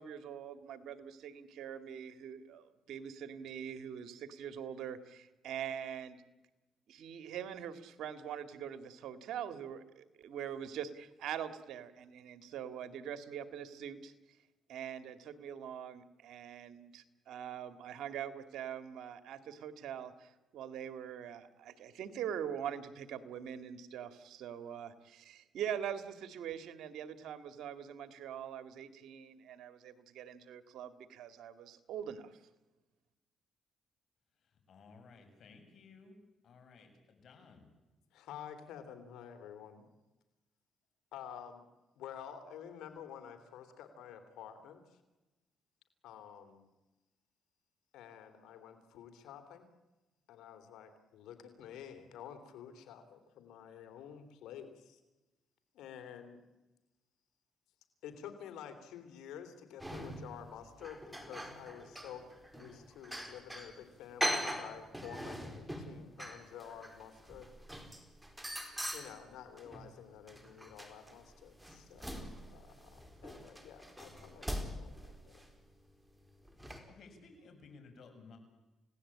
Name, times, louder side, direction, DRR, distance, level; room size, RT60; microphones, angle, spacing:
voice 1, 0.0-6.2 6.9-14.1 14.7-32.4, right 9 dB, 80° right, 10 dB, 2.1 m, -43 dB
voice 2, 34.7-36.2 36.4-37.7 76.9-78.4, left 4 dB, 60° left, 5 dB, 7.1 m, -57 dB
voice 3, 38.1-39.8 41.1-41.6 41.9-45.0 46.0-46.7 47.9-49.7 50.3-55.0 55.7-56.4 58.0-62.2 62.5-67.5 68.9-75.5, left 9 dB, 85° left, 8 dB, 3.2 m, -50 dB
sound 1, 59.8-60.5 60.8-63.7 64.2-69.9 70.3-75.5 76.5-76.8, equal, 5° right, 4.8 m, -42 dB
29.5 x 17.5 x 8.7 m, 1.1 s
cardioid pair, 90°, 0 cm